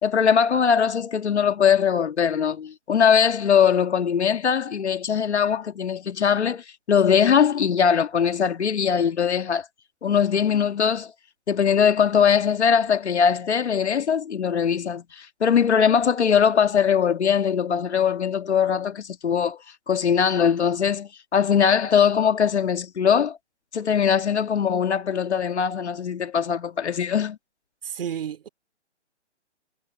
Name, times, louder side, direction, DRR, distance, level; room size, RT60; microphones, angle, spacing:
voice 1, 0.0-9.6 10.0-11.1 11.5-19.6 19.9-23.4 23.7-27.4, left 7 dB, 70° left, 1.9 m, -21 dB
voice 2, 27.8-28.5, right 9 dB, 50° right, 3.2 m, -31 dB
hypercardioid pair, 160°, 35 cm